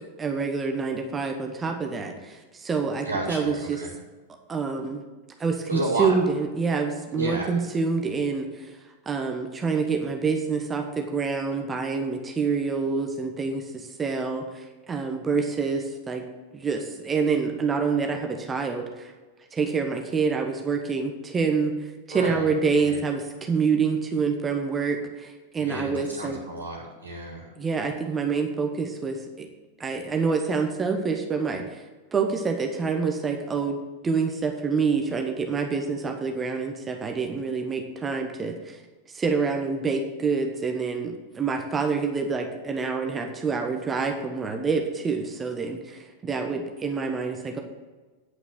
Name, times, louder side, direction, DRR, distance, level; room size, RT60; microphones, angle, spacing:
voice 1, 0.2-3.8 4.5-5.0 5.4-8.8 9.0-16.2 16.5-19.1 19.5-26.4 27.6-29.5 29.8-33.8 34.0-38.8 39.1-47.6, right 5 dB, 20° right, 4 dB, 1.1 m, -27 dB
voice 2, 3.0-4.0 5.7-6.1 7.1-7.6 22.1-22.5 22.8-23.0 25.6-27.5, right 1 dB, 75° right, -6 dB, 2.1 m, -31 dB
9.6 x 5.9 x 7.8 m, 1.3 s
figure-of-eight pair, 90°, 0 cm